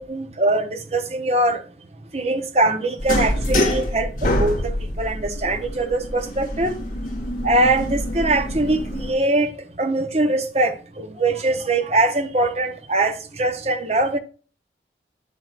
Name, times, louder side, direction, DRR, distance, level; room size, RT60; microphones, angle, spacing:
voice 1, 0.1-1.6 2.1-6.8 7.4-14.2, right 2 dB, 35° right, 0.8 m, -22 dB
sound 1, 3.0-9.1, left 1 dB, 45° left, 2.5 m, -26 dB
9.4 x 7.5 x 2.4 m
head